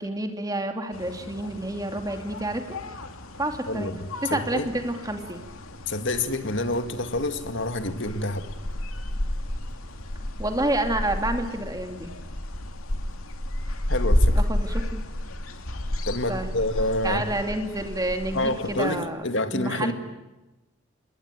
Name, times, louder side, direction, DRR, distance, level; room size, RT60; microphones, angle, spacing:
voice 1, 0.0-2.8 3.4-3.9 4.2-5.4 10.4-12.1 14.3-15.0 16.3-16.5 17.0-19.2 19.5-19.9, right 1 dB, 15° right, 5 dB, 2.5 m, -29 dB
sound 1, 0.9-19.0, left 1 dB, 80° left, 2.6 m, -31 dB
voice 2, 3.7-4.7 5.9-8.5 13.9-14.4 16.1-17.2 18.3-19.9, left 2 dB, 60° left, 9 dB, 2.1 m, -28 dB
27.0 x 21.5 x 9.3 m, 1.0 s
head